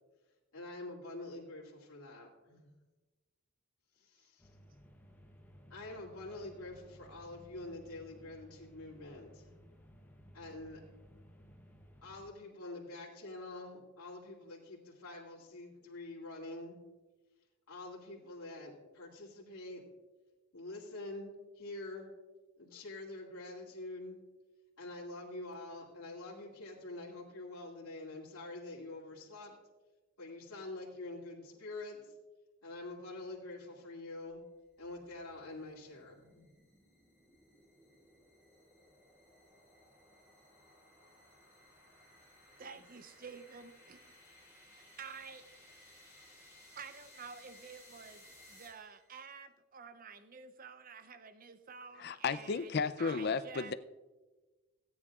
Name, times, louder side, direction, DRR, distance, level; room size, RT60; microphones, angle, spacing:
voice 1, 0.5-2.7 4.0-4.5 5.7-9.5 10.3-10.8 12.0-16.8 17.7-19.8 20.5-22.1 22.6-24.2 24.8-29.6 30.2-32.2 32.6-34.4 34.8-36.5 42.6-42.8, left 2 dB, 85° left, -5 dB, 2.4 m, -46 dB
sound 1, 4.4-12.3, equal, 10° left, 0.8 m, -58 dB
sound 2, 34.3-49.2, left 1 dB, 15° right, 2.7 m, -61 dB
voice 2, 42.6-44.0 44.7-45.4 46.8-53.7, right 5 dB, 40° right, 10 dB, 0.6 m, -50 dB
voice 3, 52.0-53.7, left 5 dB, 45° left, 12 dB, 0.4 m, -33 dB
17.0 x 9.5 x 2.4 m, 1.2 s
head